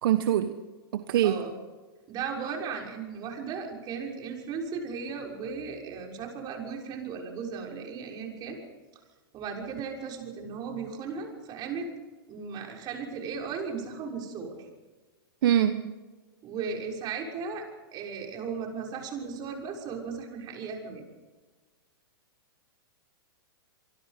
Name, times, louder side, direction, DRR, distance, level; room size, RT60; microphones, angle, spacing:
voice 1, 0.0-0.5 0.9-1.4 15.4-15.9, right 11 dB, 65° right, 9 dB, 1.3 m, -24 dB
voice 2, 2.1-8.6 9.3-11.9 12.3-14.6 16.4-17.6 17.9-21.1, right 5 dB, 35° right, 0 dB, 6.4 m, -36 dB
26.5 x 23.5 x 5.3 m, 1.3 s
hypercardioid pair, 125°, 13 cm